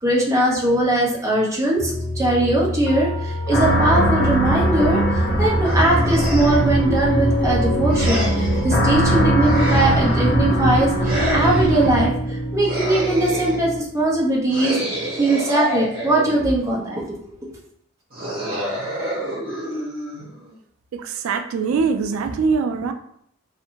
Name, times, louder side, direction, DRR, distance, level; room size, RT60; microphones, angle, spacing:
voice 1, 0.0-1.9 2.2-12.1 12.5-14.8 15.2-17.0 17.4-17.5, right 1 dB, 15° right, -4 dB, 0.7 m, -20 dB
sound 1, 1.8-13.8, equal, 75° left, 0.6 m, -26 dB
sound 2, 3.5-12.1, right 1 dB, 40° left, 1.0 m, -21 dB
sound 3, 5.6-6.8 7.9-8.7 9.4-10.3 11.0-11.9 12.6-13.7 14.5-16.6 18.1-20.5, equal, 45° right, 0.9 m, -28 dB
voice 2, 20.9-22.9, right 5 dB, 90° right, 7 dB, 0.3 m, -22 dB
2.6 x 2.5 x 2.8 m, 0.68 s
head